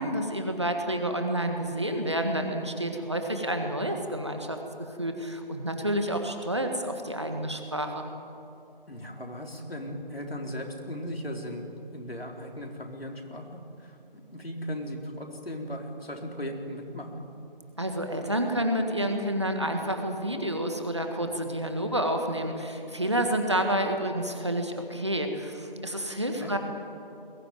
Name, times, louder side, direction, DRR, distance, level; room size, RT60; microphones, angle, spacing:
voice 1, 0.0-4.6 5.0-8.0 17.8-26.6, right 1 dB, 30° right, 4 dB, 1.7 m, -29 dB
voice 2, 8.9-11.7 11.9-14.0 14.3-17.2 26.1-26.6, equal, 85° left, 1 dB, 4.5 m, -37 dB
21.5 x 18.0 x 9.2 m, 2.6 s
figure-of-eight pair, 180°, 29 cm